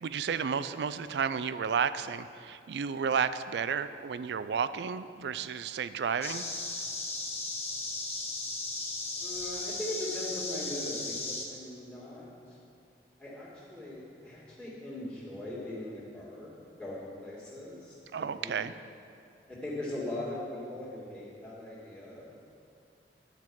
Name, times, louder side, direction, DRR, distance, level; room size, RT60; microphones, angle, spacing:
voice 1, 0.0-6.4 18.1-18.7, right 6 dB, 75° right, 13 dB, 0.4 m, -32 dB
sound 1, 6.2-11.4, left 2 dB, 35° left, 1.0 m, -36 dB
voice 2, 9.2-12.6 13.2-16.5 16.8-18.6 19.5-22.3, left 1 dB, 5° left, -8 dB, 1.9 m, -40 dB
10.5 x 4.6 x 7.4 m, 2.4 s
head